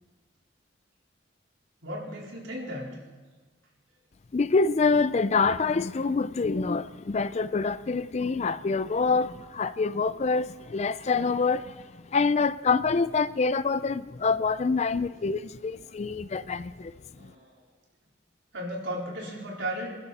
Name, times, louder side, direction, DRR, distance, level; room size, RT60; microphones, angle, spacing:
voice 1, 1.8-3.0 15.9-16.1 17.1-17.5 18.5-19.9, equal, 75° right, 4.4 m, -35 dB
voice 2, 4.3-16.9, left 4 dB, 35° left, 0.4 m, -26 dB
28.0 x 12.0 x 4.2 m
head